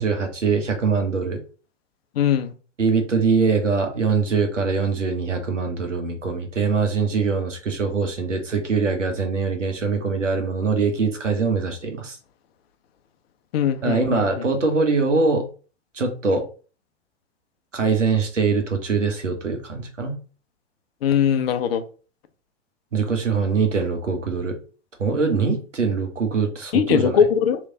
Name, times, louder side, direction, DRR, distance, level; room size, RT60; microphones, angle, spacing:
voice 1, 0.0-1.4 2.8-12.2 13.8-15.5 15.9-16.4 17.7-20.2 22.9-24.6 25.0-27.2, right 4 dB, 85° right, 1.2 m, -23 dB
voice 2, 2.2-2.5 13.5-14.4 21.0-21.8 26.7-27.6, left 8 dB, 55° left, 0.7 m, -20 dB
3.2 x 3.1 x 3.8 m
figure-of-eight pair, 105°, 36 cm